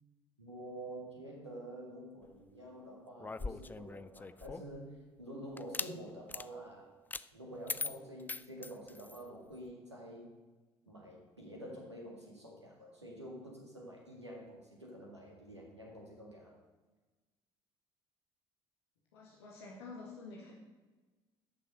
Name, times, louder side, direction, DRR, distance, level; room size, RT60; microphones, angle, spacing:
voice 1, 0.4-6.9 7.3-10.3 10.9-16.6, right 1 dB, 90° right, -1 dB, 1.7 m, -48 dB
sound 1, 3.2-4.8 5.6-5.9 6.3-6.5 7.1-7.3 7.7-9.2, left 3 dB, 15° left, 0.4 m, -41 dB
voice 2, 19.1-20.5, left 3 dB, 70° left, -3 dB, 1.9 m, -49 dB
11.0 x 6.8 x 6.5 m, 1.2 s
figure-of-eight pair, 50°, 14 cm